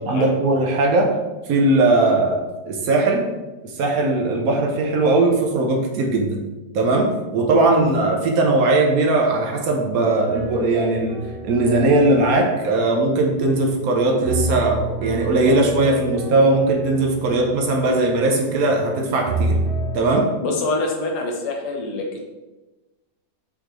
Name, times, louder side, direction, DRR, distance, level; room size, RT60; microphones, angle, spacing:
voice 1, 0.1-1.2 1.5-3.3 3.6-6.4 6.7-11.2 11.4-19.6 19.9-20.3, right 2 dB, 70° right, 1 dB, 1.0 m, -19 dB
sound 1, 10.3-13.7 14.2-18.9 19.2-20.0, right 1 dB, 85° right, 0.5 m, -29 dB
voice 2, 20.4-22.2, left 2 dB, 75° left, 1 dB, 1.3 m, -25 dB
3.8 x 3.4 x 3.0 m, 1.1 s
omnidirectional pair, 1.8 m